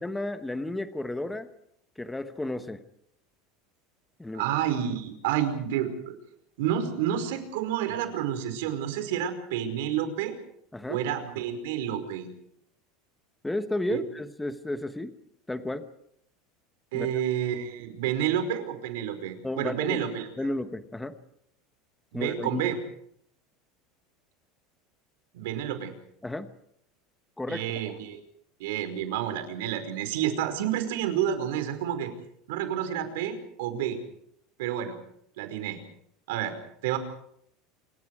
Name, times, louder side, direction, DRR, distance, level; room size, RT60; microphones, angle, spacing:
voice 1, 0.0-1.5 2.0-2.8 4.2-4.4 10.7-11.0 13.4-15.2 15.5-15.9 16.9-17.1 19.4-20.0 20.4-21.1 22.1-22.6 26.2-26.5 27.4-28.0, left 1 dB, 5° left, 9 dB, 1.1 m, -33 dB
voice 2, 4.3-6.1 6.6-10.4 10.9-12.3 13.9-14.1 16.9-20.3 22.1-22.8 25.3-25.9 27.5-28.2 28.6-32.1 32.5-34.0 34.6-35.0 35.4-35.8 36.3-36.5 36.8-37.0, right 10 dB, 80° right, 8 dB, 5.2 m, -29 dB
27.5 x 25.0 x 4.9 m, 0.71 s
supercardioid pair, 170°, 0 cm